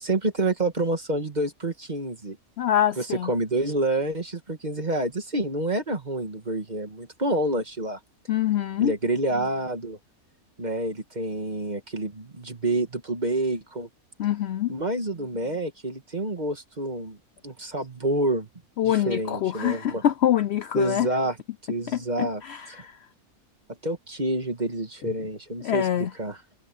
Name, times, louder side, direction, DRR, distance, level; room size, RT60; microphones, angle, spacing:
voice 1, 0.0-2.4 3.0-8.0 8.8-10.0 10.6-13.9 14.7-17.2 17.4-18.5 18.8-20.0 20.8-21.4 21.7-22.4 22.7-22.8 23.8-25.9 26.2-26.4, right 2 dB, 30° right, 2.0 m, -28 dB
voice 2, 2.6-3.3 8.3-8.9 14.2-14.7 18.8-21.1 21.9-23.0 25.6-26.1, left 11 dB, 65° left, 0.7 m, -25 dB
omnidirectional pair, 1.6 m